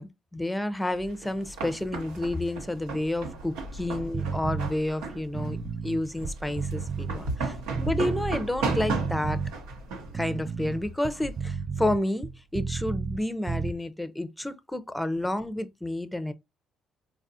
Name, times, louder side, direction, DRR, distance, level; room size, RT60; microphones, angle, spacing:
voice 1, 0.0-5.6 5.8-9.4 10.1-16.3, left 1 dB, 10° left, 0.6 m, -30 dB
sound 1, 1.0-11.4, right 3 dB, 85° right, 0.8 m, -35 dB
sound 2, 4.1-4.7 5.3-8.4 8.7-9.5 10.1-13.2 13.5-13.7, right 6 dB, 45° right, 0.4 m, -32 dB
4.0 x 2.4 x 2.7 m
supercardioid pair, 60°, 0 cm